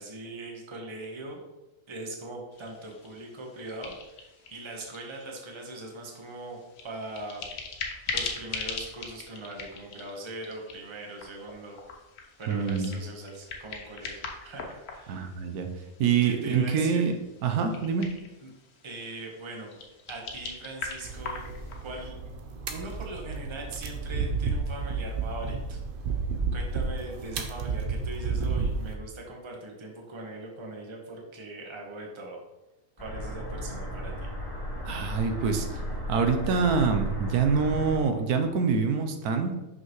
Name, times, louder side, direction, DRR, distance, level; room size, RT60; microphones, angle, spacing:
voice 1, 0.0-1.4 1.9-6.6 6.8-7.4 8.1-11.8 12.4-15.3 16.2-17.0 18.4-18.5 18.8-19.8 20.1-21.4 21.8-22.3 22.7-25.8 26.5-32.4 33.0-34.3, right 2 dB, 25° right, 0 dB, 0.8 m, -40 dB
sound 1, 2.5-22.1, left 4 dB, 75° left, 1.4 m, -42 dB
voice 2, 12.5-12.9 15.1-15.7 16.0-17.1 17.4-18.1 34.8-35.7 36.1-39.5, right 5 dB, 80° right, 6 dB, 1.2 m, -25 dB
sound 2, 21.0-28.9, right 4 dB, 55° right, 0.6 m, -32 dB
sound 3, 33.0-38.0, equal, 15° left, 1.8 m, -35 dB
5.8 x 5.6 x 3.0 m, 1.0 s
omnidirectional pair, 1.6 m